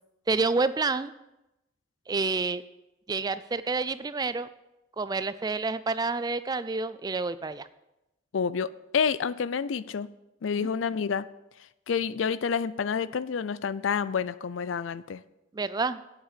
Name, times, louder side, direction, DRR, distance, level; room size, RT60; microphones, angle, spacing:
voice 1, 0.3-1.1 2.1-2.6 3.1-4.5 5.0-7.7 10.6-10.7 15.5-16.0, right 3 dB, 20° right, 14 dB, 0.3 m, -28 dB
voice 2, 8.3-10.1 10.4-11.3 11.9-15.2, left 6 dB, 80° left, 17 dB, 0.4 m, -28 dB
8.9 x 7.5 x 6.7 m, 0.93 s
head